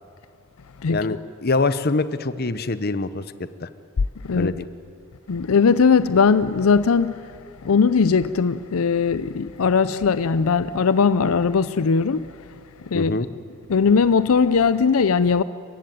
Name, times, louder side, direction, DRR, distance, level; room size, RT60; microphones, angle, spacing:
voice 1, 0.9-3.2 3.6-3.7 4.3-4.7 12.9-13.3, left 3 dB, 45° left, 0.8 m, -24 dB
voice 2, 5.3-7.3 7.6-12.3 12.8-13.1 13.7-15.4, left 5 dB, 75° left, 0.5 m, -19 dB
28.5 x 15.5 x 9.2 m
head